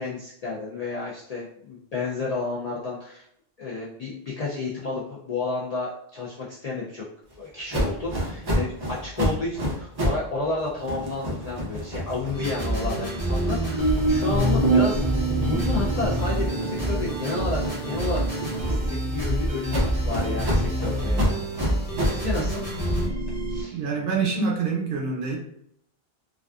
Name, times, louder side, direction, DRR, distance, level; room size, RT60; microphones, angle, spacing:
voice 1, 0.0-3.2 3.6-7.0 7.4-15.0 15.3-18.2 18.7-21.3 22.0-22.6 23.5-23.8, left 3 dB, 55° left, -6 dB, 0.5 m, -31 dB
sound 1, 7.7-10.3 10.6-15.4 15.8-19.1 19.7-22.3, equal, 40° right, 0.3 m, -30 dB
sound 2, 12.3-12.7 13.3-20.6 20.8-20.9 21.2-21.3 21.9-23.6, right 2 dB, 85° left, 1.0 m, -28 dB
sound 3, 12.3-23.1, right 1 dB, 20° left, 0.8 m, -28 dB
voice 2, 23.7-25.4, right 5 dB, 70° right, -1 dB, 0.8 m, -26 dB
2.4 x 2.3 x 2.3 m, 0.70 s
omnidirectional pair, 1.0 m